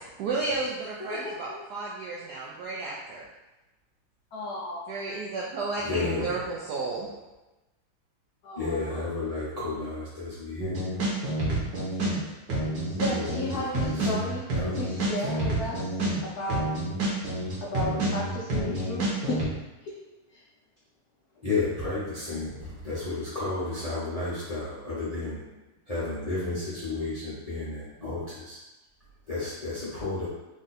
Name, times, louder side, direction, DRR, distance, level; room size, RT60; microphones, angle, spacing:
voice 1, 0.0-3.3 4.9-7.1, right 3 dB, 80° right, -4 dB, 0.9 m, -33 dB
voice 2, 1.0-1.6 4.3-5.0 6.0-6.1 8.4-9.0 11.9-12.0 12.8-14.4 14.8-16.8 17.6-19.9 20.3-20.4, left 1 dB, 85° left, -3 dB, 0.8 m, -34 dB
voice 3, 5.8-6.5 8.5-11.0 12.9-14.2 14.6-15.3 17.2-17.6 21.4-25.4 25.9-28.6 29.3-30.3, left 3 dB, 45° left, -10 dB, 0.5 m, -32 dB
sound 1, 10.6-12.2 12.5-19.4, right 1 dB, 60° right, 1.6 m, -28 dB
3.7 x 2.5 x 4.0 m, 1.1 s
omnidirectional pair, 2.3 m